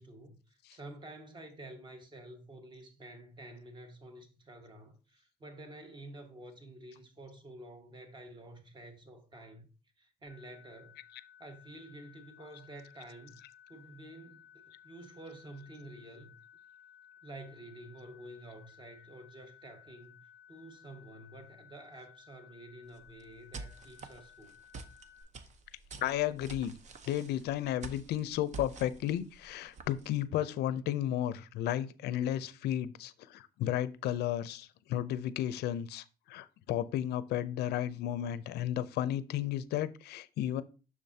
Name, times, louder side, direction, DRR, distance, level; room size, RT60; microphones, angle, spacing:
voice 1, 0.0-9.7 10.0-11.0 11.4-13.4 13.7-16.3 17.2-20.2 20.5-24.6, right 1 dB, 30° right, 1.5 m, -50 dB
sound 1, 10.3-25.2, left 9 dB, 75° right, 3.8 m, -58 dB
sound 2, 22.9-30.2, right 4 dB, 45° right, 0.9 m, -48 dB
voice 2, 26.0-26.7 27.1-40.6, left 12 dB, 75° left, 0.5 m, -33 dB
7.2 x 6.2 x 2.8 m
cardioid pair, 110°, 17 cm